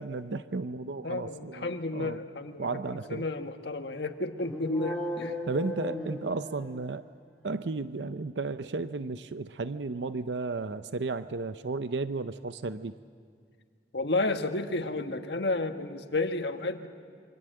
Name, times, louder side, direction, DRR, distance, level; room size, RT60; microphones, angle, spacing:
voice 1, 0.0-2.2 2.6-3.2 5.5-7.0 7.4-12.9, right 3 dB, 90° right, 12 dB, 0.7 m, -34 dB
voice 2, 1.0-5.4 12.2-12.3 13.9-16.9, left 2 dB, 80° left, 6 dB, 1.5 m, -32 dB
sound 1, 4.4-6.9, left 1 dB, 10° left, 2.8 m, -36 dB
27.5 x 24.5 x 7.8 m, 2.2 s
head